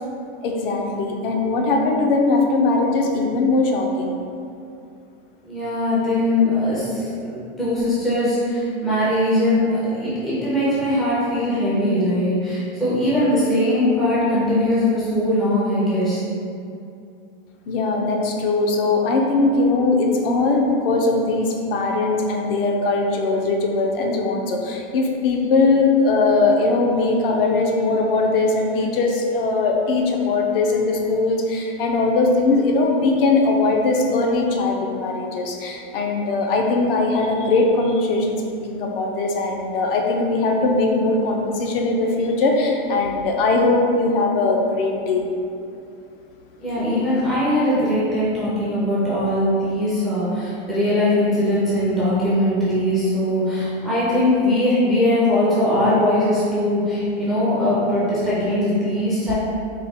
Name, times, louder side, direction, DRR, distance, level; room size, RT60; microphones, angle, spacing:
voice 1, 0.4-4.2 17.7-38.4 38.7-45.3 46.8-46.9, left 3 dB, 60° left, 1 dB, 0.5 m, -20 dB
voice 2, 5.4-16.2 46.6-59.3, left 1 dB, ahead, -11 dB, 0.4 m, -20 dB
3.6 x 2.1 x 3.4 m, 2.5 s
supercardioid pair, 160°, 32 cm